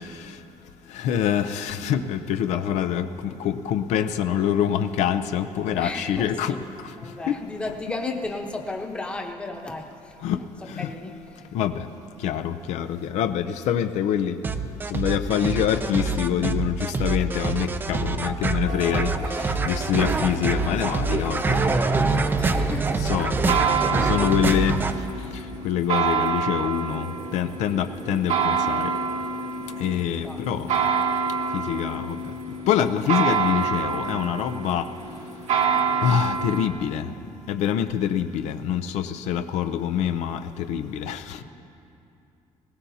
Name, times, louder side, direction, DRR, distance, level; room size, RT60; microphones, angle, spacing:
voice 1, 0.9-3.1 3.4-6.5 7.3-7.4 10.2-10.4 10.8-10.9 11.5-11.9 12.2-14.3 14.9-19.1 19.7-21.8 23.1-23.5 23.9-24.8 25.6-27.1 27.3-28.9 29.8-30.7 31.5-32.2 32.7-34.9 36.0-37.1 37.5-41.4, left 9 dB, 80° left, 10 dB, 0.6 m, -25 dB
voice 2, 5.8-6.7 7.0-10.2 10.8-11.5 21.3-23.1 30.2-30.4, left 2 dB, 10° left, 1 dB, 0.9 m, -35 dB
sound 1, 14.4-24.9, right 3 dB, 15° right, 0.4 m, -25 dB
sound 2, 18.7-36.7, right 5 dB, 80° right, 1.5 m, -28 dB
21.0 x 18.0 x 2.8 m, 2.7 s
cardioid pair, 175°, 12 cm